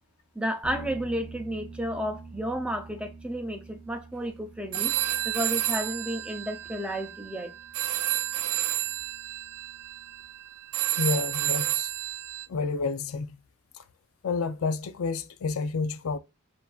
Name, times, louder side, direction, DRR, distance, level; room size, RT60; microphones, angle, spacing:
voice 1, 0.4-4.9 5.2-7.5, equal, 5° right, 0.5 m, -32 dB
sound 1, 0.6-10.1, right 3 dB, 15° left, 1.2 m, -47 dB
sound 2, 4.7-12.5, right 13 dB, 85° right, 0.4 m, -30 dB
voice 2, 11.0-11.9 12.5-13.4 13.7-13.8 14.2-16.2, left 4 dB, 75° left, 0.4 m, -29 dB
7.0 x 2.6 x 2.3 m
head